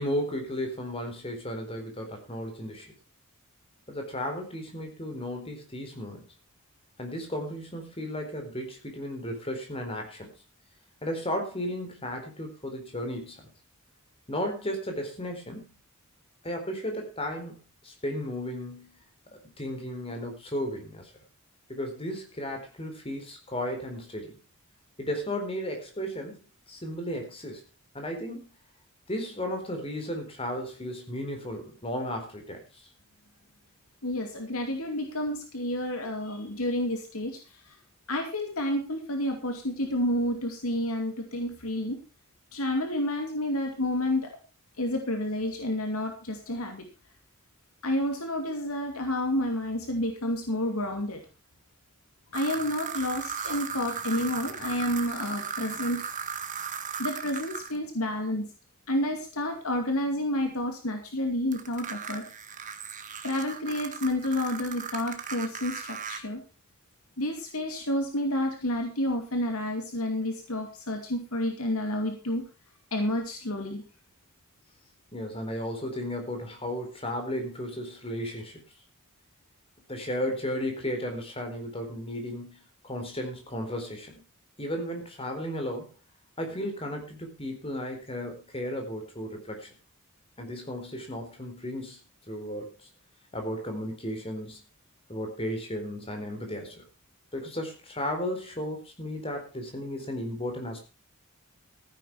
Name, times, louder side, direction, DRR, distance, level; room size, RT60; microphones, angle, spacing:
voice 1, 0.0-2.9 3.9-6.2 7.0-10.3 11.0-13.5 14.3-15.7 16.4-18.9 19.6-21.1 21.7-24.4 25.0-26.4 26.7-27.6 27.9-28.4 29.1-32.9 75.1-78.6 79.9-82.6 82.8-84.1 84.6-85.9 86.4-89.7 90.4-92.0 92.3-92.7 93.3-94.6 95.1-96.8 97.3-100.8, equal, 25° left, 4 dB, 4.2 m, -34 dB
voice 2, 34.0-37.8 38.1-42.0 42.5-44.3 44.8-46.9 47.8-51.2 52.3-56.0 57.0-58.5 58.9-62.2 63.2-66.4 67.2-72.5 72.9-73.8, left 1 dB, 75° left, 4 dB, 2.7 m, -30 dB
sound 1, 52.3-57.8 61.5-66.2, right 6 dB, 35° right, 1.7 m, -37 dB
15.0 x 10.0 x 4.8 m, 0.31 s
head